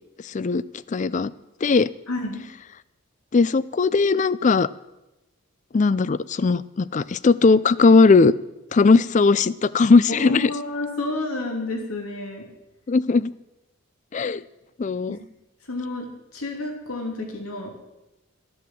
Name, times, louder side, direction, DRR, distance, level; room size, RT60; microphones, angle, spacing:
voice 1, 0.2-0.6 0.9-1.3 1.6-1.9 3.3-4.7 5.7-8.3 8.7-10.5 12.9-13.3 14.1-14.4 14.8-15.2, left 4 dB, 35° left, 19 dB, 0.4 m, -18 dB
voice 2, 2.1-2.5 10.1-12.5 15.1-15.2 15.7-17.7, left 2 dB, 75° left, 2 dB, 2.7 m, -30 dB
14.0 x 8.6 x 7.6 m, 0.97 s
head